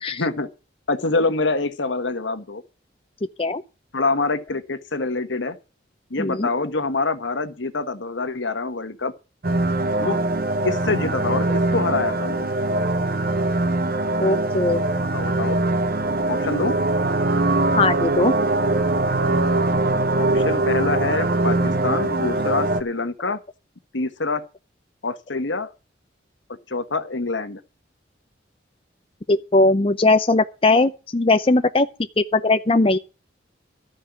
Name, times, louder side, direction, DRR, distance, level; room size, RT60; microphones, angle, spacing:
voice 1, 0.1-0.5 0.9-2.6 3.9-5.6 6.1-9.1 10.0-10.2 10.6-12.5 15.0-15.6 16.3-16.8 20.1-21.6 21.8-23.4 23.9-24.4 25.0-25.7 26.7-27.6, left 3 dB, 80° left, 1.4 m, -25 dB
voice 2, 6.2-6.5 14.2-14.8 17.8-18.3 29.3-31.9 32.3-33.0, left 2 dB, 30° left, 0.6 m, -19 dB
sound 1, 9.4-22.8, right 2 dB, 50° right, 0.8 m, -22 dB
13.5 x 5.5 x 9.1 m
head